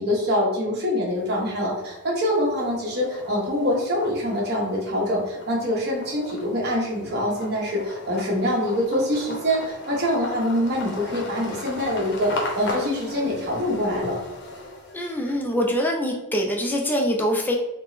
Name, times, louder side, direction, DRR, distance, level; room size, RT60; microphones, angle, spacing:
voice 1, 0.0-14.2, equal, 50° right, -3 dB, 1.2 m, -25 dB
Car on gravel, 1.1-1.7 2.1-15.6, left 2 dB, 55° left, 0.8 m, -37 dB
voice 2, 14.9-17.6, equal, 10° left, 0 dB, 0.4 m, -24 dB
3.6 x 2.1 x 4.0 m, 0.94 s
head